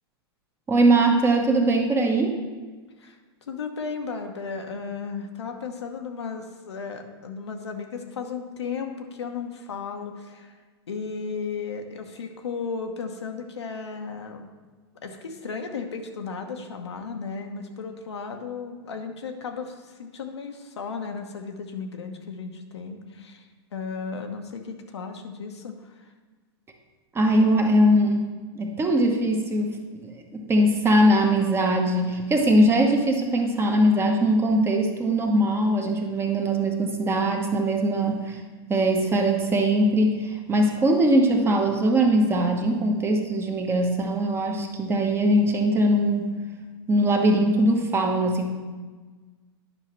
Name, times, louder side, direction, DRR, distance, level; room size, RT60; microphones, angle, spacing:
voice 1, 0.7-2.4 27.1-28.2 28.5-38.4 38.7-46.3 46.9-48.5, right 1 dB, 15° right, 2 dB, 1.0 m, -21 dB
voice 2, 3.5-10.6 10.9-14.5 15.0-23.5 23.7-26.0, left 5 dB, 85° left, 4 dB, 0.9 m, -35 dB
9.7 x 5.7 x 3.1 m, 1.4 s
hypercardioid pair, 115°, 14 cm